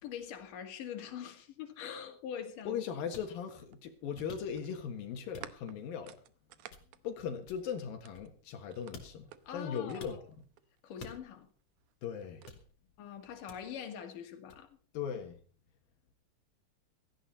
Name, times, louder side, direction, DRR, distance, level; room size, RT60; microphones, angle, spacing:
voice 1, 0.0-2.8 9.5-10.2 10.8-11.5 13.0-14.8, left 8 dB, 70° left, 3.6 m, -43 dB
voice 2, 2.6-6.2 7.0-10.2 12.0-12.4 14.9-15.4, left 7 dB, 90° left, 3.4 m, -39 dB
sound 1, 3.0-8.3 8.7-10.8 11.8-12.6, right 12 dB, 70° right, 2.2 m, -53 dB
sound 2, 3.1-3.3 4.3-4.8 5.3-5.8 6.7-7.1 7.5-8.6 8.9-9.4 10.0-10.2 11.0-11.5 12.5-12.9 13.5-13.9 14.5-14.7, left 2 dB, 50° left, 3.4 m, -52 dB
17.0 x 15.5 x 4.2 m
omnidirectional pair, 4.0 m